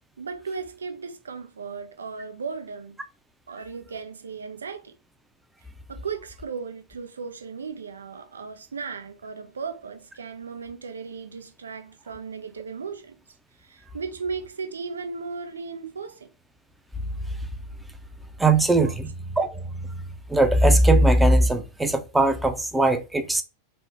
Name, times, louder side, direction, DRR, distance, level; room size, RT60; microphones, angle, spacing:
voice 1, 0.2-3.0 3.5-4.9 5.9-13.2 13.6-16.3 18.8-18.9, right 5 dB, 70° right, 0.6 m, -36 dB
voice 2, 18.4-20.0 20.3-23.4, right 2 dB, 5° right, 0.5 m, -20 dB
4.2 x 2.1 x 3.3 m
figure-of-eight pair, 90°, 0 cm